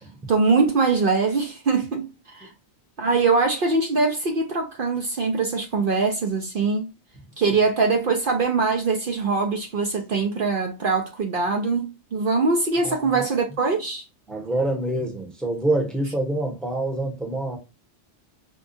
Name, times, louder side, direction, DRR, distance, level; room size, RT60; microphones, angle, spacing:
voice 1, 0.3-2.5 3.0-6.9 7.4-14.0, right 4 dB, 55° right, 0.8 m, -22 dB
voice 2, 12.8-13.2 14.3-17.6, right 2 dB, ahead, 0.8 m, -26 dB
5.3 x 2.3 x 2.5 m
omnidirectional pair, 1.2 m